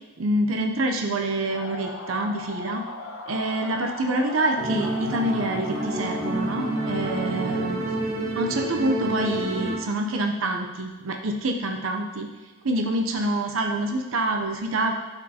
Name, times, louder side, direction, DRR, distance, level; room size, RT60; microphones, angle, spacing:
voice 1, 0.2-2.8 3.3-7.8 8.4-12.3 12.6-14.9, right 1 dB, 75° right, 3 dB, 0.6 m, -26 dB
sound 1, 1.5-7.7, left 3 dB, 75° left, 0.7 m, -38 dB
sound 2, 4.6-9.8, right 1 dB, 45° right, 1.0 m, -28 dB
12.0 x 4.4 x 2.8 m, 1.2 s
head